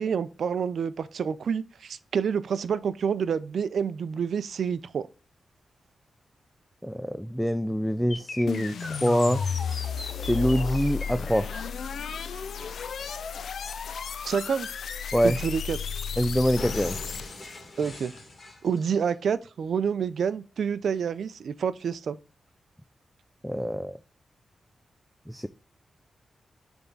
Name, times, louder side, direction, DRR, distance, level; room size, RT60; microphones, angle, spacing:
voice 1, 0.0-5.1 14.2-14.7 15.2-15.8 17.8-18.1 18.6-22.2, right 7 dB, 75° right, 0.5 m, -28 dB
voice 2, 6.8-9.4 10.2-11.5 15.1-15.4 16.2-17.0 23.4-24.0 25.3-25.5, equal, ahead, 0.3 m, -25 dB
sound 1, 8.1-16.1 16.6-19.1, left 2 dB, 50° left, 2.0 m, -41 dB
sound 2, 8.5-17.6, left 7 dB, 80° left, 0.4 m, -33 dB
6.9 x 3.6 x 3.9 m
wide cardioid pair, 115°, 0 cm